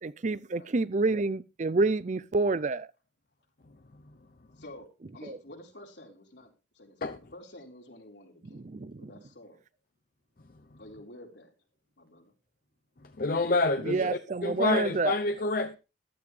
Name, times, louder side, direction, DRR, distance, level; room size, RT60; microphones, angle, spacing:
voice 1, 0.0-2.9 5.2-5.4 8.5-9.1 13.9-15.1, right 3 dB, 45° right, 0.5 m, -28 dB
voice 2, 4.6-4.9 5.1-8.7 9.0-9.6 10.8-11.5 12.0-12.3, left 1 dB, 80° left, 3.9 m, -50 dB
voice 3, 13.2-15.8, left 3 dB, 55° left, 0.7 m, -28 dB
15.0 x 12.0 x 3.3 m
head